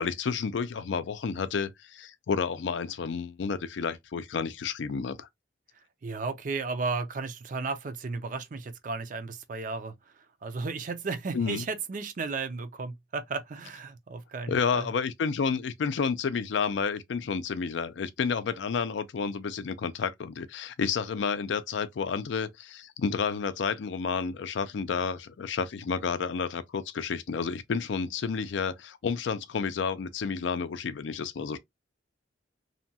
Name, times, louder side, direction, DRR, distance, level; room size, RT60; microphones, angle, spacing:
voice 1, 0.0-5.3 11.3-11.6 14.5-31.6, left 5 dB, 75° left, 0.4 m, -30 dB
voice 2, 6.0-14.9, right 4 dB, 45° right, 0.4 m, -34 dB
2.8 x 2.2 x 2.7 m
head